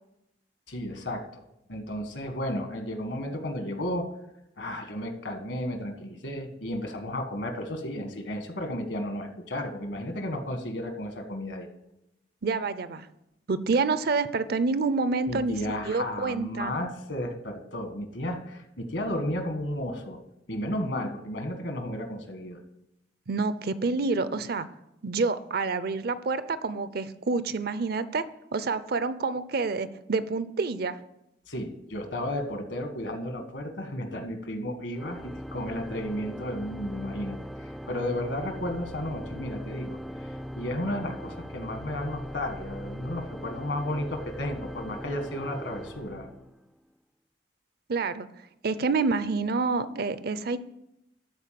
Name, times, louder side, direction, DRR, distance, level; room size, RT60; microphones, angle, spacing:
voice 1, 0.7-1.2 1.7-4.1 4.6-11.7 15.3-20.2 20.5-22.6 31.5-46.3, left 1 dB, 70° left, 5 dB, 1.6 m, -33 dB
voice 2, 12.4-13.1 13.5-15.6 15.9-16.7 23.3-24.7 25.0-28.2 28.5-31.0 47.9-48.3 48.6-50.6, right 4 dB, 55° right, 14 dB, 0.5 m, -28 dB
Organ, 34.9-46.8, equal, ahead, 0.3 m, -40 dB
12.5 x 4.4 x 7.5 m, 0.85 s
head